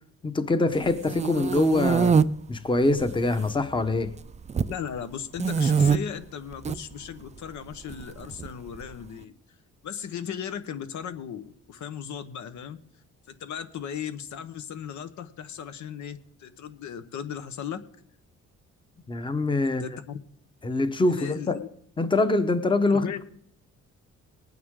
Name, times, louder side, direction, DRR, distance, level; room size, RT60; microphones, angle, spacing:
voice 1, 0.2-2.2 2.5-4.1 19.1-19.8 20.6-21.6 22.0-23.1, left 2 dB, 15° left, 10 dB, 0.9 m, -24 dB
sound 1, 0.8-2.2 2.9-3.5 3.8-4.7 5.4-6.0 6.5-6.8 7.9-8.8, right 6 dB, 25° right, 0.4 m, -23 dB
voice 2, 4.7-9.3 9.8-12.8 13.3-17.8 19.6-20.2 21.1-21.7 22.9-23.2, left 8 dB, 70° left, 10 dB, 1.1 m, -37 dB
20.0 x 9.3 x 3.7 m, 0.66 s
cardioid pair, 115°, 30 cm